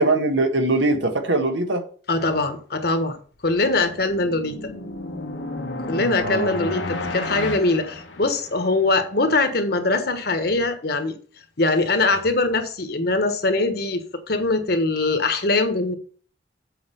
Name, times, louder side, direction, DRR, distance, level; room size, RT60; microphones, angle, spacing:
voice 1, 0.0-1.8 6.2-6.5, right 2 dB, 80° right, 1.6 m, -21 dB
voice 2, 2.1-3.2 3.4-4.6 5.9-11.2 11.6-16.0, left 2 dB, 55° left, 1.4 m, -22 dB
sound 1, 3.8-8.8, left 2 dB, 80° left, 1.3 m, -32 dB
8.0 x 4.7 x 7.0 m
head